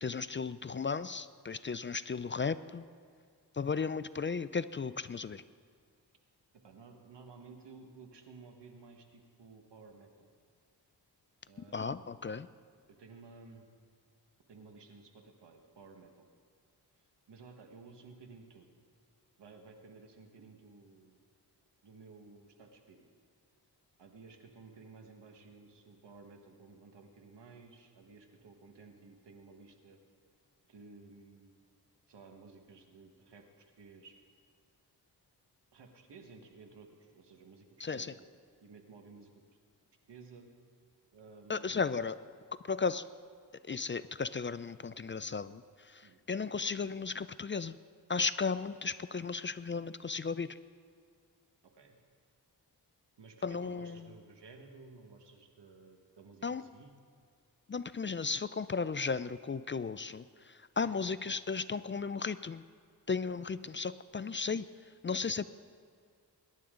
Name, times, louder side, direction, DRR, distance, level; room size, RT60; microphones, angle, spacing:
voice 1, 0.0-2.9 3.5-5.4 11.7-12.5 37.8-38.1 41.5-42.2 42.7-43.0 43.7-47.8 48.1-50.6 53.4-54.0 56.4-56.6 57.7-62.6 63.1-64.7 65.0-65.5, left 5 dB, 30° left, 15 dB, 0.4 m, -35 dB
voice 2, 6.6-10.3 11.5-12.2 12.9-13.7 14.5-16.3 17.3-18.7 19.4-21.2 21.8-23.1 24.0-30.0 30.7-31.6 32.1-34.1 35.7-37.7 37.9-38.3 38.6-39.3 40.1-40.5 41.1-41.8 46.0-46.2 51.6-52.0 53.2-57.0 60.8-61.0, right 4 dB, 90° right, 4 dB, 1.6 m, -55 dB
22.0 x 11.0 x 3.8 m, 2.1 s
cardioid pair, 65°, 41 cm